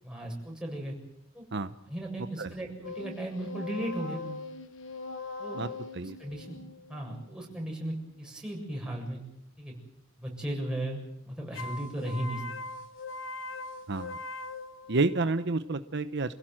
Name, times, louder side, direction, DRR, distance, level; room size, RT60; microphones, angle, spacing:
voice 1, 0.0-1.0 1.3-1.5 1.9-4.2 5.4-5.6 6.2-6.6 6.9-9.2 9.6-9.7 10.2-12.7, right 1 dB, 5° right, -1 dB, 7.5 m, -36 dB
sound 1, 2.8-8.2 11.5-15.5, left 3 dB, 70° left, 1.2 m, -41 dB
voice 2, 14.9-16.3, right 3 dB, 60° right, 11 dB, 0.9 m, -29 dB
28.0 x 16.5 x 7.6 m, 0.81 s
head